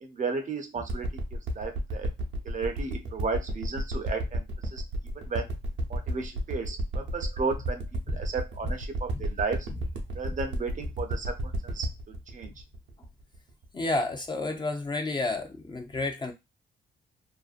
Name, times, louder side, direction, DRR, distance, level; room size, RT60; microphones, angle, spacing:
voice 1, 0.0-2.1 2.4-4.4 4.7-4.8 5.1-5.5 5.9-9.7 10.2-11.4 11.6-11.9 12.3-12.5, right 4 dB, 40° right, 0.6 m, -34 dB
sound 1, 0.9-13.6 14.2-14.3, equal, 70° right, 0.7 m, -32 dB
voice 2, 13.7-16.3, left 2 dB, 25° left, 0.5 m, -31 dB
2.6 x 2.1 x 2.4 m
cardioid pair, 90°, 20 cm